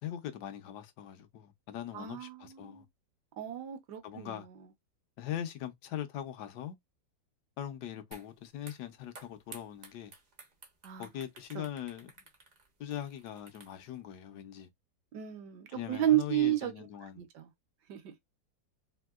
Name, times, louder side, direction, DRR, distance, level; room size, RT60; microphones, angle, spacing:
voice 1, 0.0-2.8 4.0-4.5 5.2-6.8 7.6-10.1 11.0-12.1 12.8-14.7 15.7-17.3, left 10 dB, 75° left, 1.1 m, -41 dB
voice 2, 1.9-2.8 3.4-4.5 10.8-11.1 11.5-11.7 15.1-16.9 17.2-17.5 17.9-18.1, right 12 dB, 75° right, 1.2 m, -32 dB
sound 1, 8.1-8.3 8.6-14.0, right 3 dB, 55° right, 0.4 m, -53 dB
3.6 x 2.6 x 2.3 m
omnidirectional pair, 1.9 m